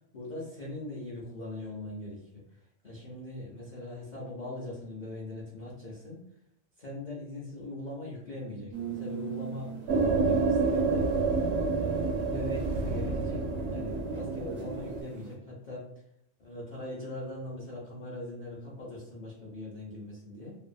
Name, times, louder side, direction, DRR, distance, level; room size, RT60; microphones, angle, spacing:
voice 1, 0.1-2.4 2.8-6.2 6.8-11.1 11.4-15.9 16.4-20.6, left 1 dB, 45° left, -7 dB, 0.6 m, -41 dB
sound 1, 8.7-15.4, right 6 dB, 45° right, 0.4 m, -43 dB
sound 2, 9.9-15.0, right 4 dB, 70° right, 0.8 m, -28 dB
2.7 x 2.3 x 2.5 m, 0.73 s
omnidirectional pair, 1.3 m